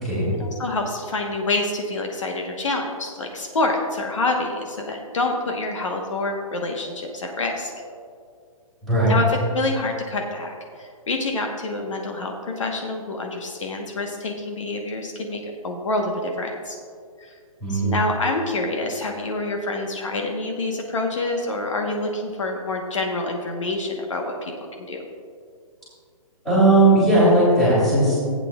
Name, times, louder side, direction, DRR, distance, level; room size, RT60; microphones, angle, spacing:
voice 1, 0.4-7.7 9.1-16.8 17.2-17.4 17.7-24.5 24.8-25.0, left 2 dB, 60° left, 2 dB, 1.1 m, -27 dB
voice 2, 8.8-9.1 17.6-18.0 26.4-28.2, right 2 dB, ahead, -11 dB, 2.5 m, -17 dB
15.5 x 8.5 x 2.3 m, 2.2 s
hypercardioid pair, 180°, 18 cm